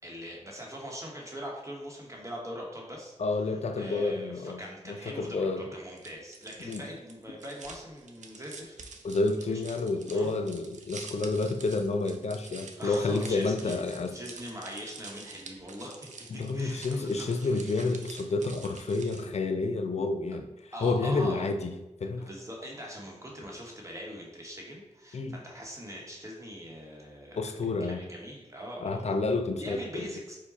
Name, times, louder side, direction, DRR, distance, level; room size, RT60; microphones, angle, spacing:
voice 1, 0.0-3.1 3.7-8.7 9.5-9.6 10.1-10.3 12.8-16.1 16.5-17.7 20.7-21.5 22.2-27.4 27.8-29.2 29.6-30.4, equal, 25° right, -1 dB, 1.0 m, -42 dB
voice 2, 3.2-5.7 6.7-6.9 9.0-14.2 16.3-21.7 22.0-22.3 25.1-25.4 27.4-28.1 28.8-30.1, left 3 dB, 60° left, 7 dB, 0.4 m, -30 dB
sound 1, 6.0-19.4, right 4 dB, 75° right, 0.5 m, -48 dB
4.8 x 2.2 x 4.0 m, 1.0 s
wide cardioid pair, 80°, 13 cm